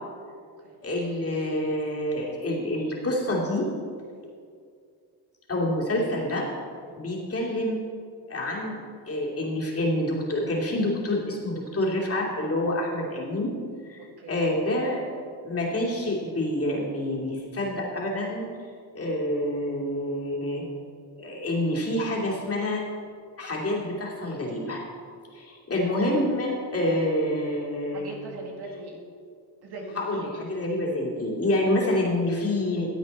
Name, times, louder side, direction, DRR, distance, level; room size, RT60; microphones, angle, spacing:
voice 1, 0.8-3.7 5.5-6.5 7.0-7.9 8.3-13.5 13.8-14.0 14.3-15.1 15.4-18.5 18.9-20.6 21.2-22.8 23.4-24.8 25.3-28.1 29.9-32.9, left 1 dB, 35° left, -3 dB, 2.8 m, -27 dB
voice 2, 27.9-29.0 29.6-30.5, right 2 dB, 70° right, 0 dB, 2.2 m, -40 dB
14.0 x 8.1 x 4.2 m, 2.3 s
cardioid pair, 95°, 41 cm